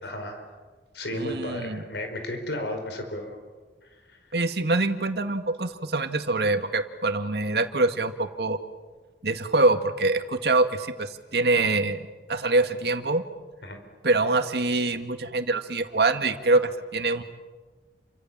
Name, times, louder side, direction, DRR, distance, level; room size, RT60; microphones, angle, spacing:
voice 1, 0.0-0.4 0.9-3.4 4.1-4.2 13.6-13.8, left 1 dB, 80° left, 5 dB, 4.9 m, -33 dB
voice 2, 1.1-1.8 4.3-8.6 9.2-12.0 12.3-13.2 14.0-17.2, right 2 dB, 70° right, 7 dB, 2.0 m, -24 dB
30.0 x 25.0 x 7.5 m, 1.3 s
head